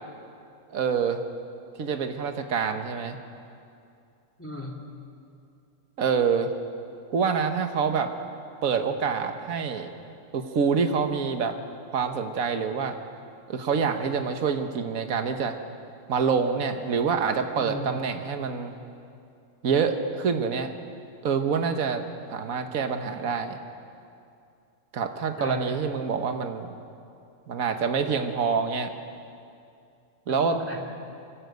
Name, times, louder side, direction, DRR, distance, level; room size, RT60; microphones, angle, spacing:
voice 1, 0.7-1.2 1.8-3.2 6.0-6.5 7.1-8.1 8.6-9.9 10.3-11.6 11.9-13.0 13.5-15.6 16.1-18.7 19.6-20.7 21.2-22.0 22.3-23.6 24.9-26.7 27.5-28.9 30.3-30.6, right 6 dB, 75° right, 7 dB, 1.6 m, -26 dB
voice 2, 4.4-4.7 17.6-17.9 25.4-25.8 30.3-30.8, left 1 dB, 10° left, -1 dB, 2.8 m, -34 dB
25.0 x 15.0 x 8.0 m, 2.5 s
omnidirectional pair, 1.5 m